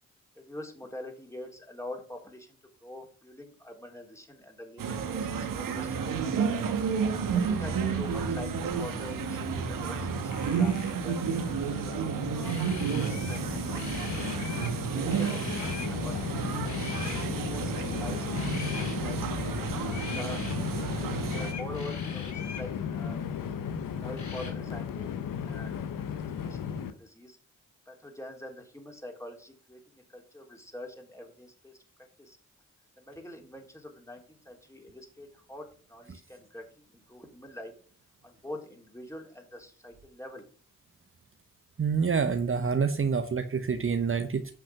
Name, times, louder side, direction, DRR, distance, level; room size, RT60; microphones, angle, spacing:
voice 1, 0.4-6.6 7.3-11.2 11.7-11.9 12.5-13.4 14.9-16.9 17.4-18.3 18.6-20.4 20.9-23.2 23.9-25.7 26.1-27.4 27.9-31.8 32.2-32.4 33.0-37.7 38.2-40.5, left 1 dB, 10° left, 2 dB, 3.5 m, -45 dB
sound 1, 4.8-21.5, right 6 dB, 85° right, 1.2 m, -31 dB
Train, 7.0-26.9, left 7 dB, 80° left, 0.9 m, -36 dB
sound 2, 10.3-11.0 12.4-13.5 13.7-14.8 15.1-15.9 16.6-17.3 18.3-19.0 19.9-20.6 21.3-22.7 24.2-24.5, left 5 dB, 60° left, 2.6 m, -42 dB
voice 2, 41.8-44.5, right 5 dB, 40° right, 9 dB, 0.9 m, -27 dB
8.6 x 5.9 x 5.8 m, 0.41 s
supercardioid pair, 40°, 32 cm